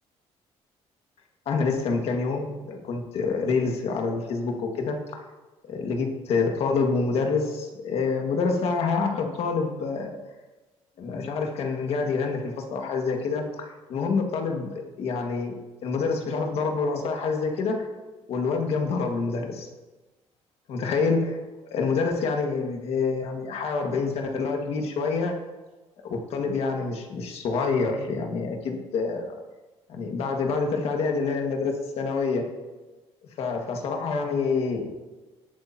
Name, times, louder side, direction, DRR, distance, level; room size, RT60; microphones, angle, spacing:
voice 1, 1.4-5.2 5.6-10.2 11.0-15.6 15.8-17.9 18.3-19.7 20.7-21.4 21.7-25.3 26.0-29.3 29.9-32.4 33.4-34.9, left 4 dB, 60° left, 2 dB, 1.7 m, -27 dB
18.5 x 8.7 x 2.8 m, 1.2 s
cardioid pair, 170°, 12 cm